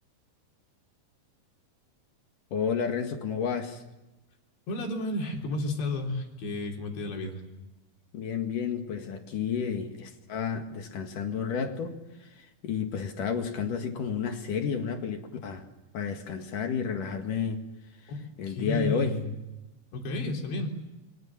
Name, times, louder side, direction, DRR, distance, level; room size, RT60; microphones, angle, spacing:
voice 1, 2.5-3.8 8.1-12.3 12.6-15.6 15.9-17.7 18.4-19.2, left 6 dB, 55° left, 5 dB, 3.1 m, -31 dB
voice 2, 4.7-7.4 18.1-18.2 18.5-19.3 19.9-20.7, left 2 dB, 85° left, 2 dB, 5.9 m, -32 dB
27.0 x 24.0 x 7.4 m, 1.0 s
omnidirectional pair, 4.8 m